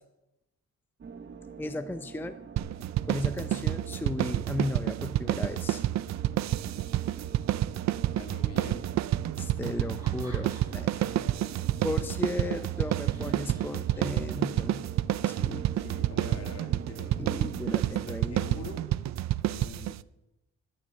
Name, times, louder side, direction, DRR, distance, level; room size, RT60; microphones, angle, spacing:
sound 1, 1.0-18.9, right 6 dB, 40° right, 1.2 m, -45 dB
voice 1, 1.6-2.4 3.1-5.8 9.4-10.9 11.8-14.8 15.3-15.6 17.2-18.4, left 2 dB, 5° left, 9 dB, 0.7 m, -35 dB
sound 2, 2.6-20.0, right 13 dB, 65° right, 0.6 m, -29 dB
voice 2, 8.1-8.9 10.9-11.7 15.7-17.2 17.9-18.8 19.4-19.9, left 5 dB, 55° left, 5 dB, 2.6 m, -45 dB
Laughter, 9.7-11.0 11.4-14.6, equal, 10° right, 5.5 m, -53 dB
13.0 x 9.6 x 7.6 m, 0.92 s
cardioid pair, 90°, 30 cm